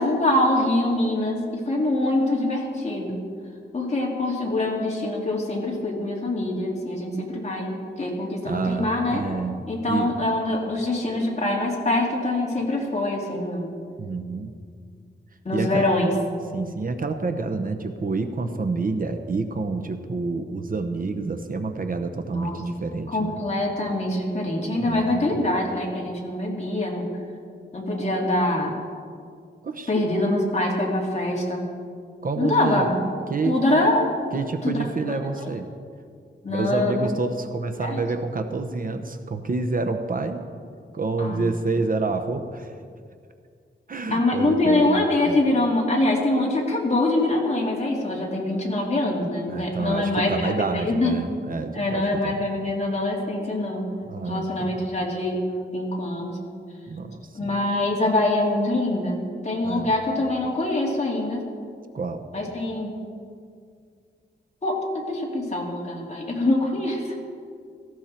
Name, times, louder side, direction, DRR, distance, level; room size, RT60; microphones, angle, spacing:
voice 1, 0.0-3.2 3.7-9.2 9.7-13.7 15.4-16.1 22.3-22.6 23.1-27.1 27.7-28.7 29.9-31.7 32.4-33.0 33.5-34.1 34.6-34.9 35.4-35.5 36.4-37.0 37.8-38.0 41.2-41.5 44.1-51.1 51.7-53.9 54.3-55.4 55.7-56.4 57.3-61.5 62.3-62.9 64.6-67.1, left 2 dB, 35° left, -2 dB, 2.8 m, -24 dB
voice 2, 8.4-10.1 14.0-14.5 15.5-15.9 16.5-23.4 24.8-25.3 29.6-29.9 32.2-32.9 33.3-33.6 34.3-35.7 36.5-40.4 40.9-42.7 43.9-45.4 49.5-52.4 54.1-54.8 56.9-57.6 59.6-59.9 61.9-62.3, right 3 dB, 45° right, 7 dB, 0.9 m, -28 dB
17.5 x 15.0 x 4.4 m, 2.2 s
wide cardioid pair, 155°, 19 cm